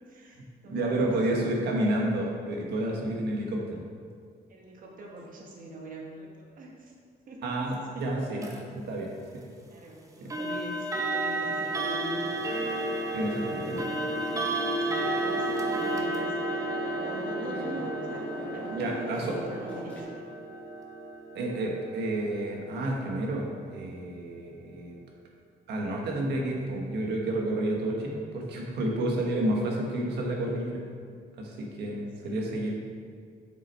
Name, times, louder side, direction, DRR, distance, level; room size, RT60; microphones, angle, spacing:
voice 1, 0.1-1.5 4.5-6.9 7.2-8.0 9.7-12.3 13.1-13.7 14.8-16.4 17.0-18.3 18.5-20.0 32.2-32.5, right 1 dB, 55° right, -1 dB, 1.4 m, -43 dB
voice 2, 0.6-3.8 7.4-9.5 10.2-10.3 13.1-13.8 18.8-19.4 21.3-25.0 25.7-30.8 31.4-32.8, right 1 dB, 80° right, 0 dB, 1.5 m, -30 dB
sound 1, 8.4-8.6 10.3-23.1, right 2 dB, 20° right, 0.8 m, -32 dB
sound 2, 12.2-20.0, equal, 10° left, 1.6 m, -41 dB
7.8 x 6.0 x 4.4 m, 2.1 s
cardioid pair, 160°, 17 cm